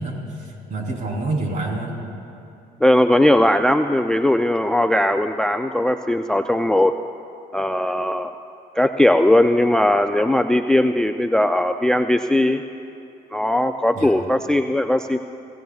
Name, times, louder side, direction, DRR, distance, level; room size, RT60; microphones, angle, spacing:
voice 1, 0.0-2.0 13.9-14.1, right 2 dB, 50° right, -1 dB, 3.5 m, -27 dB
voice 2, 2.8-6.9 7.5-8.3 8.8-12.6 13.3-15.2, left 1 dB, 5° left, 7 dB, 0.3 m, -18 dB
25.5 x 17.0 x 2.4 m, 2.7 s
cardioid pair, 110°, 17 cm